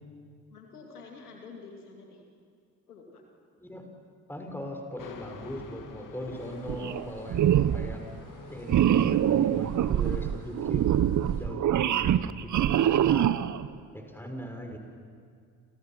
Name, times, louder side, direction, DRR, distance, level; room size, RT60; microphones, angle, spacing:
voice 1, 0.5-2.2 2.9-3.2, left 4 dB, 85° left, 1 dB, 2.7 m, -48 dB
voice 2, 4.3-8.0 8.5-10.9 11.2-12.5 12.8-13.3 13.9-14.8, equal, 5° left, 3 dB, 5.9 m, -39 dB
sound 1, 5.0-10.3, left 6 dB, 45° left, 2.5 m, -48 dB
sound 2, 6.3-11.4, right 2 dB, 80° right, 6.9 m, -53 dB
sound 3, 6.7-7.0 7.3-7.9 8.7-13.7, right 10 dB, 40° right, 0.9 m, -24 dB
29.0 x 28.5 x 6.1 m, 2.2 s
figure-of-eight pair, 45°, 44 cm